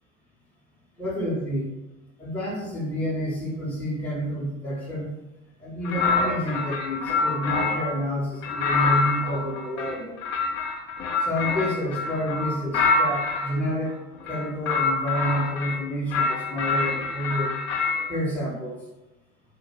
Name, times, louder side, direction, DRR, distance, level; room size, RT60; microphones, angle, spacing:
voice 1, 1.0-1.7 2.2-5.1 5.6-10.2 11.2-14.0 14.3-17.5 18.1-18.8, equal, 5° left, -7 dB, 0.7 m, -29 dB
sound 1, 5.8-8.0 8.4-13.5 14.2-15.8 16.1-18.1, left 4 dB, 30° left, 0.4 m, -26 dB
2.2 x 2.1 x 3.0 m, 1.0 s
figure-of-eight pair, 75°, 40 cm